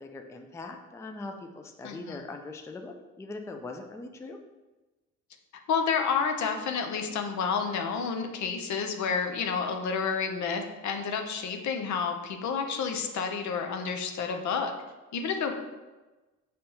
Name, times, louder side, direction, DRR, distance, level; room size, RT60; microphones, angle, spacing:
voice 1, 0.0-4.4, left 3 dB, 10° left, 5 dB, 0.3 m, -41 dB
voice 2, 1.8-2.2 5.7-14.7 15.1-15.5, left 6 dB, 70° left, 5 dB, 0.7 m, -30 dB
5.3 x 3.3 x 2.9 m, 1.2 s
cardioid pair, 90°, 30 cm